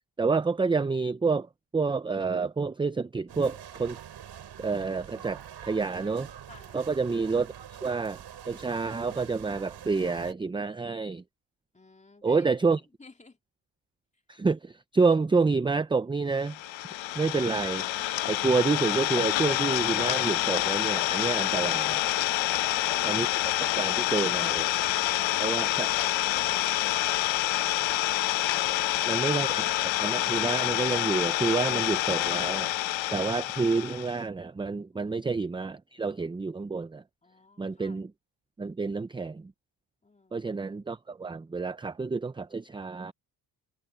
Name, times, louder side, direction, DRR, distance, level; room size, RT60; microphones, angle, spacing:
voice 1, 0.2-1.5 1.7-4.0 4.6-6.3 6.7-7.5 7.8-8.2 8.5-11.2 12.2-12.8 14.3-16.6 17.1-17.9 18.3-22.0 23.0-23.3 23.6-24.7 25.4-25.9 29.1-29.7 30.0-32.7 33.1-37.0 37.6-38.1 38.6-39.5 40.3-43.1, right 4 dB, 10° right, 0.4 m, -28 dB
sound 1, 3.3-10.3, right 9 dB, 60° right, 6.5 m, -45 dB
voice 2, 6.5-6.9 11.7-12.4 12.7-13.4 34.9-35.1 37.2-38.0 40.0-40.5, left 3 dB, 15° left, 3.2 m, -52 dB
Idling, 16.4-34.2, left 15 dB, 80° left, 0.9 m, -27 dB
cardioid pair, 125°, 45 cm